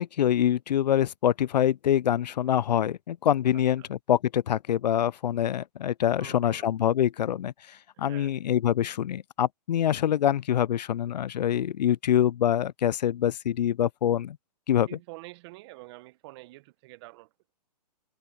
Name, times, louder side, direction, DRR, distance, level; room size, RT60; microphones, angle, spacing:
voice 1, 0.0-14.4 14.7-15.0, left 10 dB, 85° left, 0.4 m, -25 dB
voice 2, 6.2-6.7 8.1-8.3 14.9-17.3, right 22 dB, 40° right, 1.2 m, -47 dB
hypercardioid pair, 135°, 21 cm